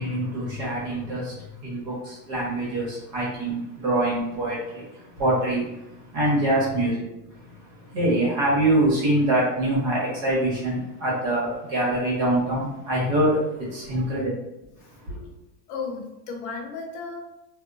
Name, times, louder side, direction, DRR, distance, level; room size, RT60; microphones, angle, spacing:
voice 1, 0.0-7.0 7.3-14.3 15.0-15.3, right 1 dB, 60° right, 1.3 m, -25 dB
voice 2, 15.7-17.2, left 4 dB, 55° left, 0.6 m, -34 dB
2.6 x 2.2 x 2.5 m
supercardioid pair, 140°, 49 cm